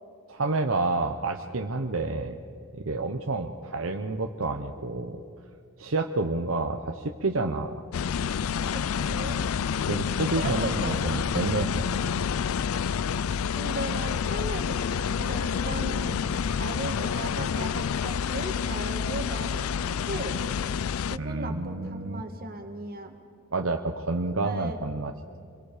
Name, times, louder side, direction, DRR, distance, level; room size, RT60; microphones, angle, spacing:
voice 1, 0.3-2.4 2.7-5.2 5.8-7.8 9.9-11.9 19.1-19.2 21.1-22.2 23.5-25.1, right 3 dB, 70° right, 4 dB, 1.0 m, -29 dB
sound 1, 7.9-21.2, left 7 dB, 80° left, 0.4 m, -28 dB
voice 2, 8.7-9.4 10.4-11.0 11.4-11.6 13.6-20.4 21.1-23.1 24.4-24.8, right 2 dB, 45° right, 4 dB, 2.1 m, -37 dB
27.0 x 22.5 x 5.1 m, 2.5 s
head